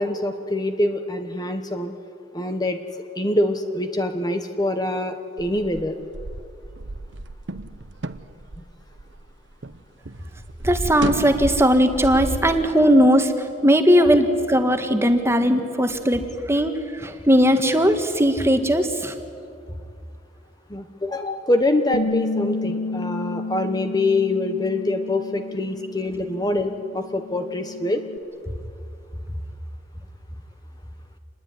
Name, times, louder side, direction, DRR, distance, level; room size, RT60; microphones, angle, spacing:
voice 1, 0.0-1.9 2.3-2.8 3.2-5.9 14.0-14.1 20.7-28.0, left 2 dB, 20° left, 7 dB, 1.2 m, -24 dB
sound 1, 5.4-9.8 10.1-12.6, right 2 dB, 80° right, 1.0 m, -32 dB
voice 2, 10.6-19.1, equal, 15° right, 6 dB, 1.8 m, -18 dB
Bass guitar, 21.9-28.2, left 3 dB, 60° left, 1.0 m, -31 dB
26.5 x 20.5 x 9.8 m, 2.4 s
head